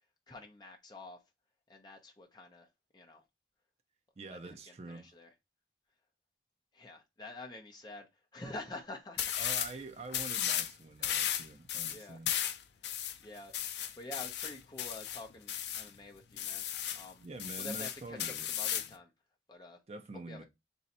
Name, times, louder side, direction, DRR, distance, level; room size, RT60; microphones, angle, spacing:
voice 1, 0.3-1.2 1.7-2.7 2.9-3.2 4.3-5.3 6.7-9.3 11.9-12.2 13.2-13.5 14.0-16.6 16.9-17.3 17.6-19.1 19.5-19.8 20.3-20.4, left 2 dB, 25° left, 0.7 m, -48 dB
voice 2, 4.2-5.1 9.4-12.3 17.2-18.5 19.9-20.4, right 3 dB, 35° right, 0.4 m, -46 dB
sound 1, 9.2-9.7 10.1-10.7 11.0-15.9 16.4-17.1 17.4-18.9, left 10 dB, 70° left, 0.5 m, -35 dB
3.1 x 2.7 x 4.1 m
head